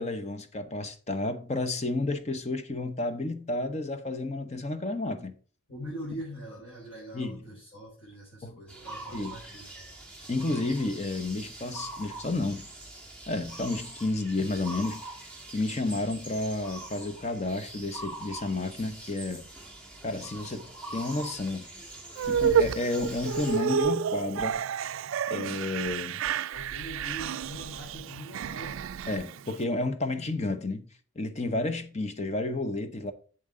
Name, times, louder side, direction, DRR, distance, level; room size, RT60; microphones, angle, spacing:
voice 1, 0.0-5.4 7.1-7.4 8.4-8.6 9.1-9.4 10.3-12.7 13.3-15.0 15.5-19.5 20.0-21.7 22.2-24.6 25.3-26.3 29.1-30.9 31.2-33.1, left 2 dB, 30° left, 0.8 m, -31 dB
voice 2, 5.7-9.9 26.5-28.9, equal, 55° left, 5.2 m, -42 dB
sound 1, 8.7-23.6, right 2 dB, 5° left, 1.5 m, -43 dB
sound 2, 22.2-29.6, right 7 dB, 65° right, 0.3 m, -30 dB
7.9 x 7.3 x 3.8 m
head